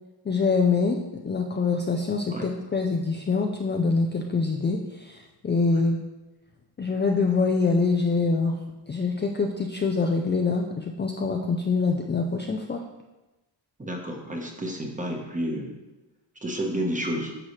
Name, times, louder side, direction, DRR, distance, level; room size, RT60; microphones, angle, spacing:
voice 1, 0.3-1.0 1.2-6.0 6.8-8.6 8.9-12.8, left 4 dB, 25° left, 2 dB, 0.4 m, -25 dB
voice 2, 13.8-15.7 16.4-17.3, equal, 15° right, 1 dB, 1.1 m, -30 dB
9.6 x 6.4 x 3.2 m, 1.1 s
wide cardioid pair, 160°, 44 cm